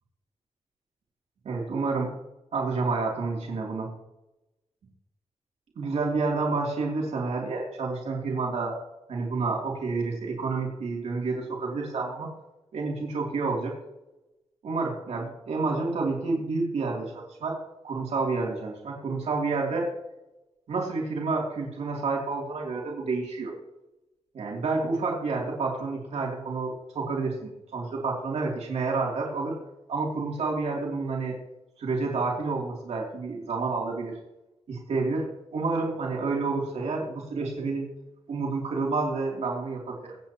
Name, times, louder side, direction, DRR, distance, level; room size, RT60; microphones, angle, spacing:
voice 1, 1.4-2.1 2.5-3.9 5.8-8.8 9.1-12.3 12.7-13.7 14.6-17.6 17.8-19.9 20.7-23.5 24.3-29.6 29.9-31.4 31.8-34.2 34.7-35.3 35.5-37.9 38.3-40.2, right 3 dB, 85° right, -2 dB, 3.0 m, -29 dB
23.5 x 8.8 x 3.0 m, 0.97 s
wide cardioid pair, 135°, 11 cm